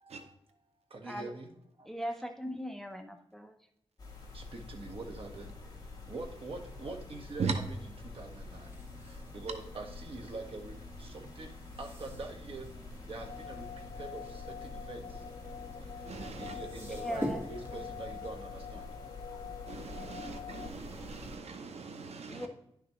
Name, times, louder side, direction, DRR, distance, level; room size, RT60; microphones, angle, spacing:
voice 1, 0.0-0.3 0.9-1.5 1.8-1.9 4.3-5.5 6.1-7.5 8.0-8.7 9.0-11.5 11.8-12.7 13.0-15.2 16.0-16.1 16.4-18.9, right 3 dB, 60° right, 1.5 m, -44 dB
voice 2, 1.9-3.5 16.9-17.4 22.3-22.5, equal, 5° left, 0.8 m, -39 dB
sound 1, 4.0-21.4, left 2 dB, 35° left, 2.6 m, -47 dB
sound 2, 8.4-18.3, equal, 20° right, 1.6 m, -46 dB
sound 3, 13.2-20.7, left 8 dB, 70° left, 0.5 m, -46 dB
voice 3, 16.1-16.6 19.7-22.5, right 5 dB, 85° right, 0.8 m, -38 dB
11.0 x 6.0 x 3.1 m
wide cardioid pair, 105°, 11 cm